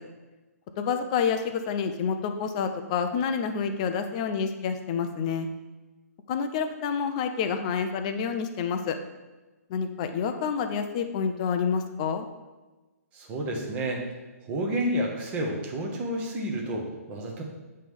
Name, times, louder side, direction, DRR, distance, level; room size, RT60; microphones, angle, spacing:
voice 1, 0.8-5.5 6.3-9.0 9.7-12.3, left 6 dB, 25° left, 7 dB, 0.5 m, -28 dB
voice 2, 13.1-14.0 14.5-17.4, right 1 dB, 15° right, 0 dB, 0.9 m, -30 dB
8.7 x 3.2 x 5.3 m, 1.2 s
hypercardioid pair, 165°, 8 cm